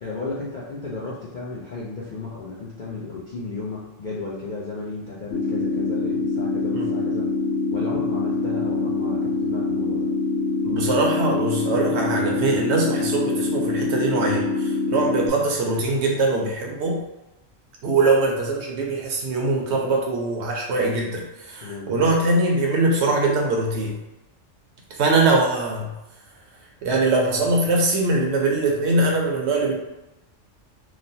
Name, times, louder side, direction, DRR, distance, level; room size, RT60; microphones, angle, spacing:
voice 1, 0.0-7.3 7.7-10.1 21.6-21.9, left 3 dB, 60° left, -6 dB, 0.5 m, -34 dB
sound 1, 5.3-15.3, left 3 dB, 80° left, 1.0 m, -24 dB
voice 2, 10.6-17.0 17.8-24.0 24.9-25.9 26.8-29.7, right 2 dB, 65° right, -1 dB, 0.8 m, -22 dB
3.0 x 2.0 x 2.6 m, 0.98 s
omnidirectional pair, 1.3 m